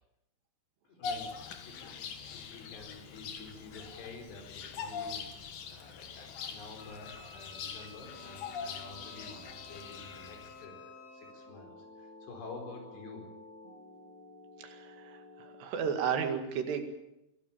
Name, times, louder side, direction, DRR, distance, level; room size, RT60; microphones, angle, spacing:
voice 1, 0.8-1.3 1.7-2.0 2.3-5.2 5.7-11.7 12.0-13.2, left 3 dB, 80° left, 3 dB, 6.8 m, -49 dB
Bird vocalization bird call bird song, 1.0-10.6, left 6 dB, 60° left, 3.2 m, -43 dB
Wind instrument woodwind instrument, 6.8-11.4, left 7 dB, 40° left, 8.6 m, -54 dB
sound 1, 8.0-15.6, left 1 dB, 5° left, 6.7 m, -53 dB
voice 2, 14.6-16.8, right 7 dB, 80° right, 6 dB, 4.2 m, -33 dB
23.5 x 17.0 x 8.7 m, 0.90 s
omnidirectional pair, 4.8 m